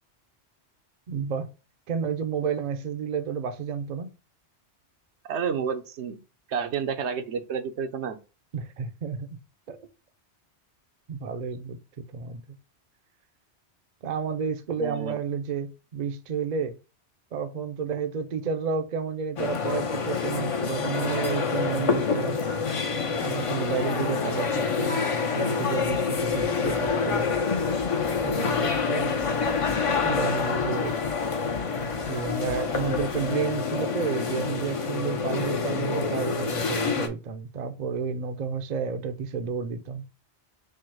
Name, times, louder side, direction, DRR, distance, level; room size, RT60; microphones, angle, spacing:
voice 1, 1.1-1.5 1.9-4.1 8.5-9.4 9.7-9.8 11.1-12.6 14.0-16.8 17.3-22.4 23.2-27.3 28.2-29.2 30.0-31.0 32.1-40.0, right 6 dB, 50° right, 0.5 m, -31 dB
voice 2, 5.3-6.2 6.5-8.2 14.8-15.1, right 6 dB, 80° right, 0.9 m, -30 dB
sound 1, 19.4-37.1, left 5 dB, 45° left, 0.5 m, -27 dB
sound 2, 25.8-33.3, left 2 dB, 85° left, 1.2 m, -45 dB
4.6 x 2.0 x 4.5 m
omnidirectional pair, 1.1 m